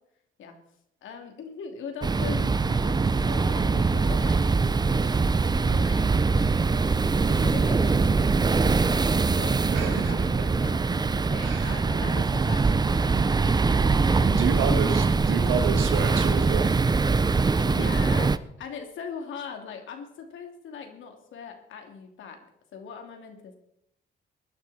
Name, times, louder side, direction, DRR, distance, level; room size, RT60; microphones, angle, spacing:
voice 1, 1.0-6.1 7.3-10.8 11.2-13.3 14.0-14.3 17.6-18.3 18.6-22.4 22.7-23.5, left 6 dB, 75° left, 4 dB, 2.7 m, -40 dB
sound 1, 2.0-18.4, right 4 dB, 20° right, 0.6 m, -23 dB
voice 2, 9.7-10.2 10.7-10.8 11.4-11.8 14.2-16.7, right 6 dB, 85° right, 6 dB, 2.1 m, -30 dB
20.0 x 11.5 x 4.2 m, 0.77 s
cardioid pair, 90°, 20 cm